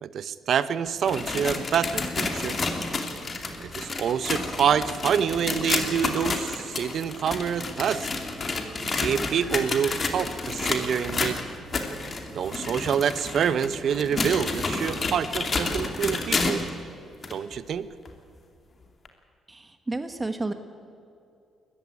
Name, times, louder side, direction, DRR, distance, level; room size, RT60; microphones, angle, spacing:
voice 1, 0.0-2.6 3.6-8.1 8.9-11.4 12.3-16.7 17.3-17.9, right 8 dB, 65° right, 14 dB, 0.9 m, -27 dB
sound 1, 0.9-16.7 17.2-17.3 18.1-18.2 19.1-19.2, left 3 dB, 35° left, 2.5 m, -30 dB
sound 2, 1.4-15.8, right 4 dB, 85° right, 2.8 m, -49 dB
voice 2, 19.5-20.5, right 2 dB, 20° right, 8 dB, 1.2 m, -31 dB
21.0 x 14.0 x 9.8 m, 2.4 s
cardioid pair, 90°, 0 cm